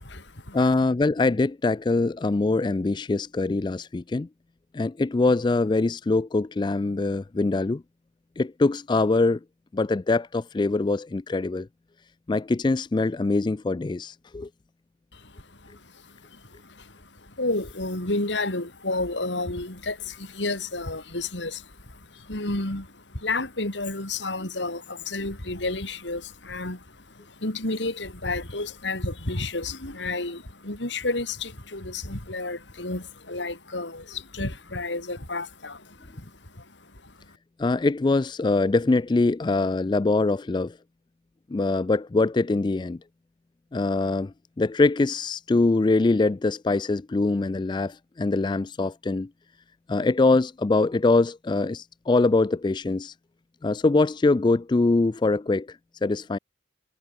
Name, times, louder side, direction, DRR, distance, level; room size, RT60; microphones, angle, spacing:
voice 1, 0.0-0.7 15.1-37.1, left 2 dB, 85° left, 4.1 m, -31 dB
voice 2, 0.5-4.3 4.7-7.8 8.4-9.4 9.7-11.7 12.3-14.5 37.6-40.8 41.5-43.0 43.7-49.3 49.9-53.1 53.6-55.7 56.0-56.4, left 3 dB, 25° left, 0.3 m, -23 dB
head